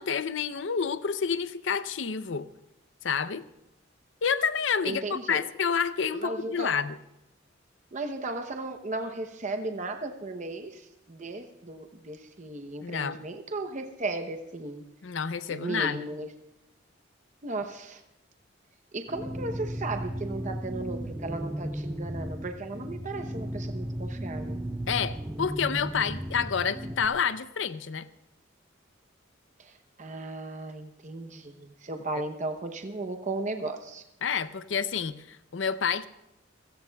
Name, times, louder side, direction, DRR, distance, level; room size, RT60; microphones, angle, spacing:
voice 1, 0.0-2.5 3.0-3.5 4.2-7.0 12.8-13.2 15.0-16.0 24.9-28.1 34.2-36.1, left 6 dB, 70° left, 13 dB, 0.6 m, -29 dB
voice 2, 4.8-5.4 6.1-6.8 7.9-14.8 15.5-16.3 17.4-18.0 18.9-24.6 29.6-34.0, right 2 dB, 40° right, 6 dB, 0.8 m, -35 dB
sound 1, 19.1-27.1, right 1 dB, 10° right, 0.7 m, -35 dB
28.0 x 17.0 x 2.3 m, 0.88 s
head